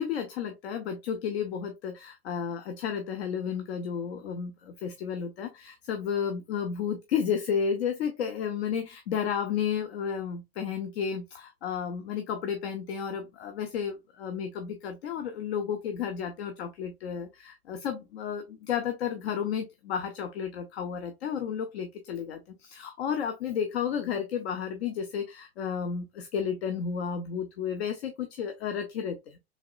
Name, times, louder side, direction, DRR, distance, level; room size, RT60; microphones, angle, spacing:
voice 1, 0.0-22.4 22.7-29.4, left 7 dB, 70° left, 7 dB, 0.6 m, -32 dB
3.5 x 3.2 x 2.3 m, 0.22 s
hypercardioid pair, 95°, 33 cm